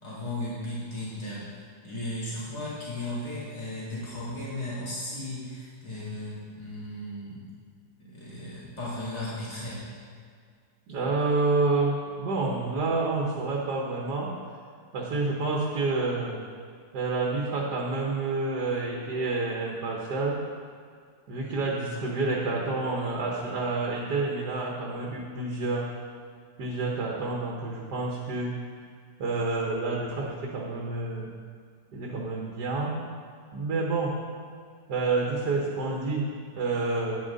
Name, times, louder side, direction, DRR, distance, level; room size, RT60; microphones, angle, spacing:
voice 1, 0.0-1.6 1.8-7.5 8.0-9.8, left 1 dB, 25° left, -9 dB, 3.2 m, -36 dB
voice 2, 10.9-14.3 14.9-16.4 16.9-20.4 21.3-25.9 26.6-28.5 29.2-31.3 31.9-33.0 33.5-34.2 34.9-36.2 36.6-37.2, right 3 dB, 85° right, -2 dB, 1.8 m, -28 dB
10.0 x 10.0 x 4.0 m, 2.1 s
omnidirectional pair, 1.7 m